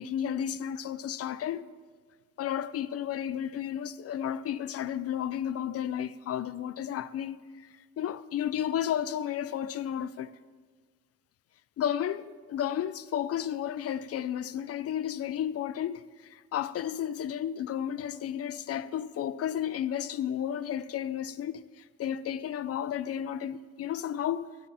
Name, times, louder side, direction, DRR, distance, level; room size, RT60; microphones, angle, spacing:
voice 1, 0.0-1.6 2.4-7.4 8.0-10.3 11.8-24.6, left 10 dB, 55° left, 0.4 m, -32 dB
15.5 x 10.5 x 3.4 m
cardioid pair, 90°, 30 cm